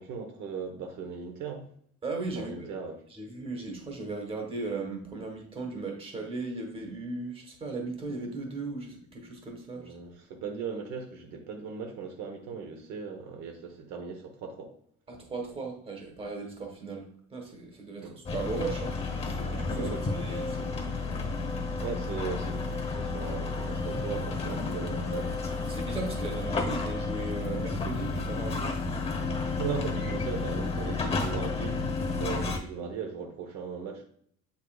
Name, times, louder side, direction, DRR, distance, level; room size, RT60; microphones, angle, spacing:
voice 1, 0.0-1.7 2.3-2.9 9.8-14.7 18.0-18.2 19.7-20.2 21.8-25.3 29.4-31.8 32.2-34.0, right 6 dB, 70° right, 2 dB, 1.1 m, -38 dB
voice 2, 2.0-2.7 3.1-10.0 15.1-21.0 25.6-28.7, right 3 dB, 20° right, 2 dB, 1.3 m, -37 dB
sound 1, 18.2-32.6, left 3 dB, 20° left, 1.1 m, -31 dB
8.0 x 5.5 x 2.4 m, 0.63 s
cardioid pair, 175°, 29 cm